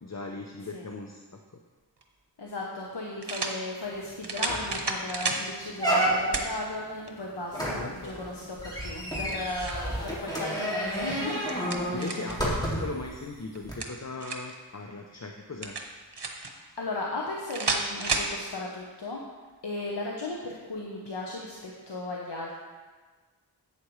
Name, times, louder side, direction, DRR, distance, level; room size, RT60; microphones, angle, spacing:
voice 1, 0.0-1.2 7.5-8.1 11.9-15.8, left 3 dB, 40° left, 2 dB, 0.7 m, -38 dB
sound 1, 2.0-2.1 3.2-3.6 4.2-5.4 6.3-6.5 7.1-7.2 9.0-9.8 11.2-12.4 13.5-14.6 15.6-16.5 17.5-18.3, right 3 dB, 85° right, 1.0 m, -31 dB
voice 2, 2.4-11.5 11.9-12.2 16.4-19.2 19.6-22.5, left 2 dB, 85° left, -2 dB, 1.0 m, -36 dB
sound 2, 4.0-4.1 4.5-4.8 5.2-5.3 5.8-6.5 7.5-13.0 13.6-13.7, right 1 dB, 10° left, 2.3 m, -30 dB
11.0 x 8.4 x 3.2 m, 1.4 s
wide cardioid pair, 40°, 40 cm